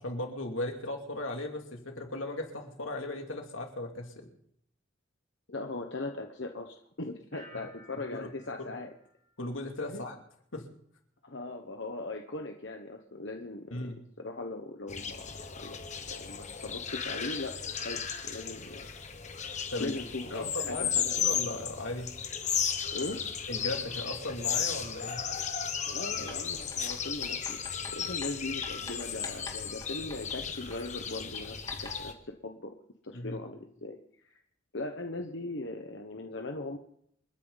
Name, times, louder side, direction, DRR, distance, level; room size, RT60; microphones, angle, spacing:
voice 1, 0.0-4.3 8.1-8.3 8.6-8.8 9.4-10.2 10.5-10.7 13.7-14.0 19.7-19.9 20.3-20.9 21.2-22.1 23.5-25.2 33.1-33.4, left 1 dB, 85° left, 2 dB, 2.8 m, -37 dB
voice 2, 5.5-8.9 9.9-10.0 11.2-13.9 14.2-15.8 16.1-17.5 17.8-18.9 19.8-21.4 22.9-23.2 25.8-27.6 27.9-32.7 33.0-34.4 34.7-36.8, left 2 dB, 60° left, 3 dB, 1.2 m, -39 dB
sound 1, 7.3-10.2 10.5-11.0, right 1 dB, 35° right, 2.5 m, -57 dB
sound 2, 14.9-32.1, left 7 dB, 35° left, 1.3 m, -35 dB
Writing, 26.3-32.2, left 2 dB, 20° left, 2.5 m, -49 dB
29.0 x 9.8 x 4.1 m, 0.69 s
head